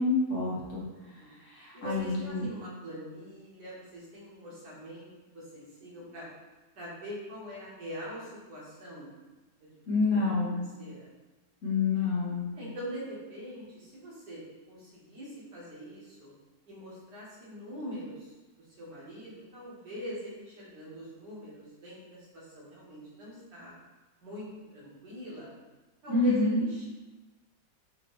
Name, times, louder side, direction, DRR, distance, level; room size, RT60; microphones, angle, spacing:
voice 1, 0.0-0.8 1.4-2.5 9.9-10.6 11.6-12.5 26.1-26.6, left 3 dB, 55° left, -7 dB, 1.2 m, -27 dB
voice 2, 0.9-1.4 1.7-6.3 6.8-9.1 9.6-9.8 10.1-11.1 12.6-14.4 14.7-16.3 16.7-23.7 24.2-25.5 26.0-26.9, equal, 75° right, -7 dB, 1.9 m, -43 dB
5.1 x 2.7 x 3.0 m, 1.2 s
omnidirectional pair, 1.9 m